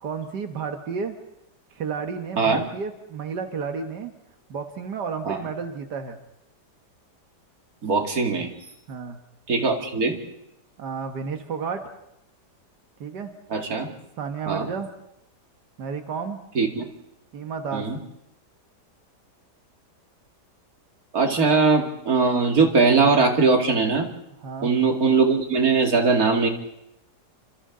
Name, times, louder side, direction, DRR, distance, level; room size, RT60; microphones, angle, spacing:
voice 1, 0.0-1.2 1.7-4.1 4.5-6.2 8.9-9.2 10.8-11.9 13.0-13.3 14.2-14.9 15.8-16.4 17.3-17.9 24.4-24.7, right 5 dB, 85° right, 6 dB, 2.0 m, -31 dB
voice 2, 7.8-8.5 9.5-10.2 13.5-13.9 14.5-14.7 16.6-16.8 17.7-18.0 21.1-24.1 24.6-26.5, right 4 dB, 60° right, 3 dB, 2.8 m, -20 dB
28.5 x 26.0 x 3.8 m, 0.82 s
omnidirectional pair, 1.8 m